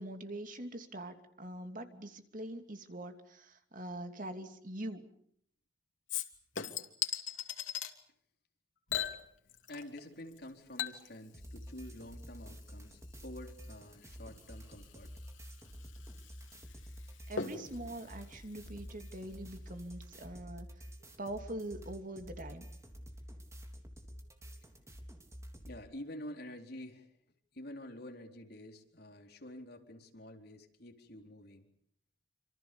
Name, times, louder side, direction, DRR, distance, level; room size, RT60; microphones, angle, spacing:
voice 1, 0.0-5.0 17.3-20.7 21.2-22.6, right 1 dB, 45° right, 7 dB, 2.8 m, -43 dB
Chink clink / Liquid, 6.1-7.9 8.9-10.0 10.3-19.3 19.7-19.8, left 8 dB, 90° left, 2.8 m, -42 dB
voice 2, 9.7-15.1 24.1-24.2 24.6-24.7 25.6-27.1 27.5-31.7, left 1 dB, 55° left, 3 dB, 4.1 m, -48 dB
sound 1, 11.3-25.8, equal, 15° right, 3.5 m, -50 dB
27.5 x 27.0 x 7.0 m, 0.67 s
head